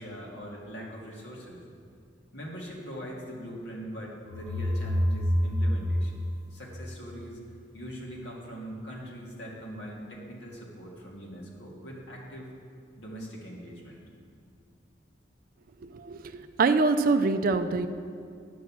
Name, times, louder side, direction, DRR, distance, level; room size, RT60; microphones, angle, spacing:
voice 1, 0.0-1.6 2.3-6.2 6.5-7.4 7.7-12.5 13.0-14.0, equal, 70° left, -3 dB, 1.8 m, -41 dB
sound 1, 4.2-7.1, equal, 10° left, 1.3 m, -28 dB
voice 2, 15.8-17.9, right 3 dB, 50° right, 8 dB, 0.4 m, -25 dB
10.5 x 7.1 x 6.0 m, 2.3 s
head